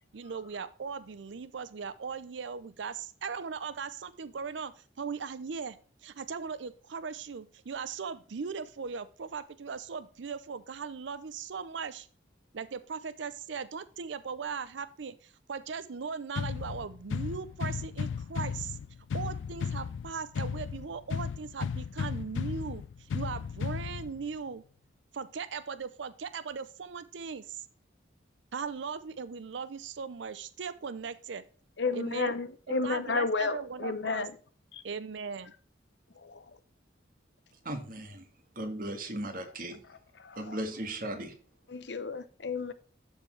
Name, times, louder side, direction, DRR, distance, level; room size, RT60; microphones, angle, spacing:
voice 1, 0.1-5.8 6.0-12.1 12.5-18.8 19.1-24.6 25.1-27.6 28.5-31.4 31.9-32.3 32.7-34.3 34.8-35.5, right 5 dB, 75° right, 0.5 m, -38 dB
sound 1, 16.4-24.4, left 6 dB, 80° left, 0.3 m, -35 dB
voice 2, 31.8-34.3 34.7-34.8 36.2-36.4 40.2-40.6 41.7-42.7, left 4 dB, 65° left, 0.8 m, -32 dB
voice 3, 37.6-38.3 38.5-39.8 40.3-41.3, right 1 dB, 45° right, 1.8 m, -37 dB
12.5 x 4.5 x 3.2 m
head